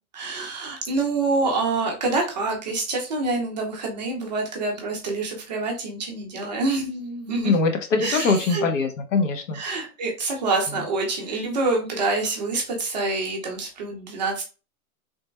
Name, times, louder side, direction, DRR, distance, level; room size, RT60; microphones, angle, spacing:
voice 1, 0.1-7.6 8.0-8.6 9.5-14.4, right 3 dB, 30° right, 0 dB, 0.5 m, -26 dB
voice 2, 7.4-9.6, left 4 dB, 60° left, 6 dB, 0.7 m, -22 dB
3.3 x 2.1 x 3.0 m, 0.33 s
hypercardioid pair, 165°, 44 cm